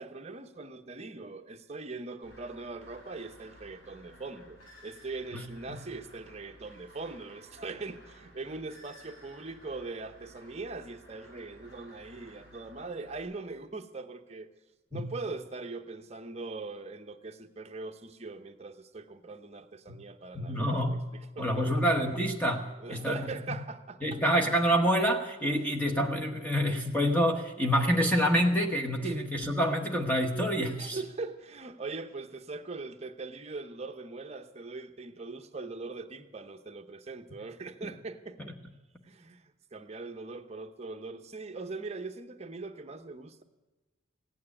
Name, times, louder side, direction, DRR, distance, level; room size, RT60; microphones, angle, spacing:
voice 1, 0.0-14.5 14.9-21.8 22.8-24.2 25.6-25.7 29.0-29.2 30.7-38.5 39.0-43.4, right 3 dB, 30° right, 6 dB, 0.8 m, -41 dB
sound 1, 2.2-13.2, equal, 75° left, 6.9 m, -55 dB
voice 2, 20.3-21.0 21.4-23.2 24.0-31.0, equal, 10° left, 1 dB, 1.0 m, -27 dB
16.0 x 9.4 x 9.7 m, 1.2 s
head